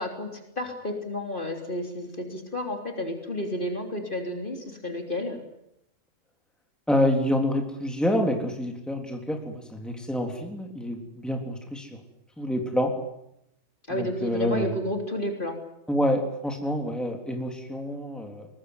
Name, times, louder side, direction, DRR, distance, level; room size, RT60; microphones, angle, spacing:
voice 1, 0.0-5.4 13.9-15.6, left 1 dB, 40° left, 4 dB, 3.7 m, -31 dB
voice 2, 6.9-11.9 12.4-12.9 13.9-14.7 15.9-18.5, left 1 dB, ahead, 3 dB, 3.4 m, -27 dB
23.0 x 20.0 x 9.6 m, 0.81 s
omnidirectional pair, 1.4 m